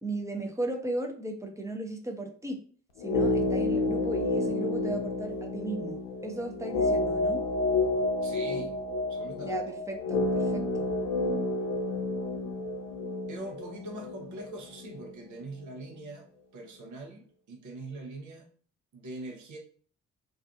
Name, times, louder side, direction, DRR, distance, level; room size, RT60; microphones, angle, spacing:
voice 1, 0.0-2.6 3.0-7.4 9.4-10.8, right 2 dB, 10° right, 2 dB, 0.7 m, -36 dB
sound 1, 3.0-15.1 15.4-15.5, left 2 dB, 65° left, 0.6 m, -30 dB
voice 2, 8.2-8.8 9.1-9.6 13.3-16.3 16.5-18.4 18.9-19.6, right 2 dB, 55° right, 2 dB, 0.8 m, -42 dB
2.6 x 2.3 x 2.5 m, 0.44 s
hypercardioid pair, 40°, 36 cm